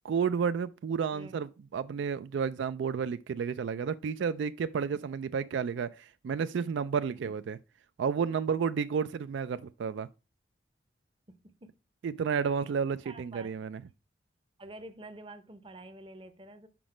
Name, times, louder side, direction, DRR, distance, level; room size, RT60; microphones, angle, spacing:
voice 1, 0.1-7.6 8.0-10.1 12.0-13.8, right 6 dB, 75° right, 0.3 m, -31 dB
voice 2, 13.0-13.6 14.6-16.7, right 2 dB, 25° right, 0.7 m, -48 dB
6.0 x 5.1 x 4.8 m
head